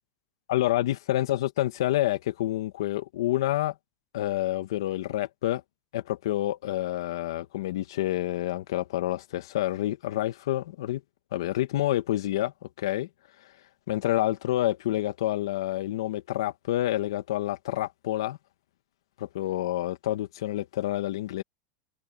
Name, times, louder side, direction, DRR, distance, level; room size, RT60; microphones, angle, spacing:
voice 1, 0.5-3.7 4.1-5.6 5.9-11.0 11.3-13.1 13.9-18.4 19.2-21.4, left 14 dB, 80° left, 1.5 m, -28 dB
supercardioid pair, 170°, 2 cm